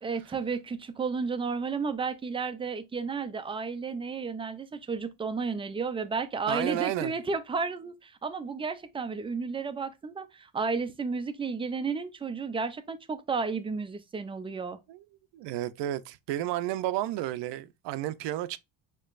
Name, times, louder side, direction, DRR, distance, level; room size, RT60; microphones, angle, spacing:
voice 1, 0.0-14.8, right 4 dB, 15° right, 0.4 m, -32 dB
voice 2, 6.5-7.1 14.9-15.0 15.3-18.6, right 13 dB, 65° right, 0.6 m, -32 dB
6.5 x 3.0 x 2.4 m
cardioid pair, 150°, 45 cm